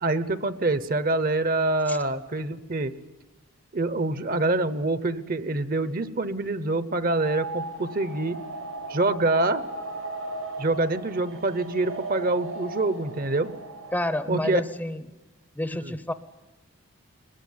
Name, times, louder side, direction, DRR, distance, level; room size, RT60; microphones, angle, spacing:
voice 1, 0.0-2.9 3.7-8.4 8.9-9.6 10.6-13.5 14.3-14.6 15.8-15.9, right 2 dB, 40° right, 14 dB, 0.9 m, -25 dB
sound 1, 7.0-14.6, right 2 dB, 85° right, 6.0 m, -37 dB
voice 2, 13.9-15.1 15.5-16.1, left 1 dB, 10° left, 12 dB, 0.7 m, -29 dB
22.0 x 21.5 x 9.6 m, 1.1 s
head